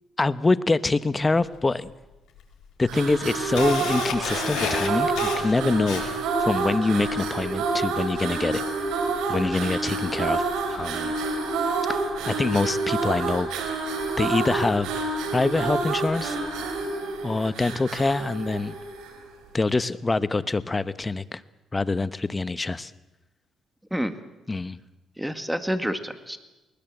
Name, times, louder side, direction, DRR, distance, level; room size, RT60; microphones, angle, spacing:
voice 1, 0.2-1.9 2.8-6.0 6.4-8.6 9.3-11.1 11.9-12.0 12.3-13.5 14.2-14.9 15.3-16.4 17.2-18.8 19.5-21.4 21.7-22.9 24.5-24.8, left 3 dB, 20° left, 15 dB, 0.9 m, -25 dB
Camera, 1.4-1.5 2.4-2.5 2.9-6.4, left 6 dB, 75° left, 5.7 m, -31 dB
sound 1, 2.8-19.3, right 3 dB, 85° right, 3.8 m, -28 dB
voice 2, 25.2-26.4, equal, 5° right, 9 dB, 2.0 m, -29 dB
21.0 x 20.0 x 7.8 m, 1.1 s
cardioid pair, 90°, 0 cm